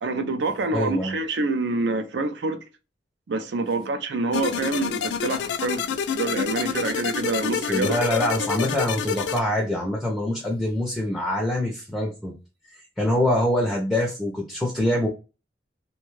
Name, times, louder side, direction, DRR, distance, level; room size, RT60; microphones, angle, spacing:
voice 1, 0.0-2.6 3.3-8.1, right 3 dB, 80° right, 0.5 m, -27 dB
voice 2, 0.7-1.1 7.5-12.3 13.0-15.1, left 1 dB, ahead, 0.5 m, -24 dB
sound 1, 4.3-9.4, left 7 dB, 80° left, 0.3 m, -28 dB
2.6 x 2.2 x 3.0 m
head